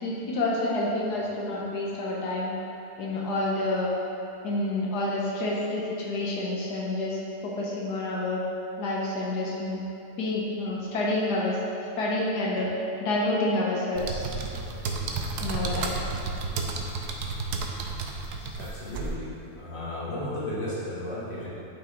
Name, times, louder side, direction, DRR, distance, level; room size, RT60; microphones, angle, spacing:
voice 1, 0.0-2.5 3.0-3.9 4.4-8.4 8.8-9.9 10.2-11.6 12.0-12.7 13.0-14.3 15.4-15.9 18.4-18.5, left 2 dB, 90° left, -4 dB, 1.6 m, -28 dB
sound 1, 13.9-19.1, right 3 dB, 75° right, 1.3 m, -32 dB
voice 2, 18.6-19.3 19.6-21.5, left 1 dB, 40° left, -8 dB, 2.1 m, -34 dB
9.7 x 5.6 x 3.9 m, 2.9 s
omnidirectional pair, 1.7 m